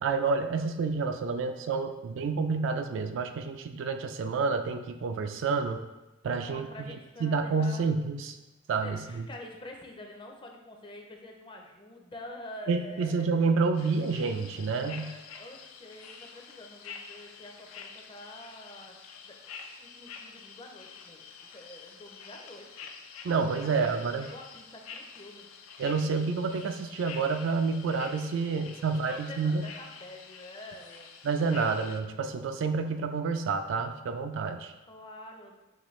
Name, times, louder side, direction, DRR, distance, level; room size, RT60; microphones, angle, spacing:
voice 1, 0.0-5.8 6.2-7.0 7.2-8.3 8.7-9.2 12.7-15.2 23.2-24.2 25.8-29.7 31.2-34.7, right 4 dB, 60° right, 7 dB, 0.3 m, -29 dB
voice 2, 6.4-8.0 8.8-13.3 13.8-13.9 14.8-21.3 21.5-22.9 23.3-25.5 29.1-31.1 34.9-35.6, left 1 dB, 25° left, 2 dB, 0.5 m, -47 dB
sound 1, 13.8-32.0, left 6 dB, 85° left, 0.4 m, -48 dB
5.5 x 3.0 x 3.1 m, 1.0 s
head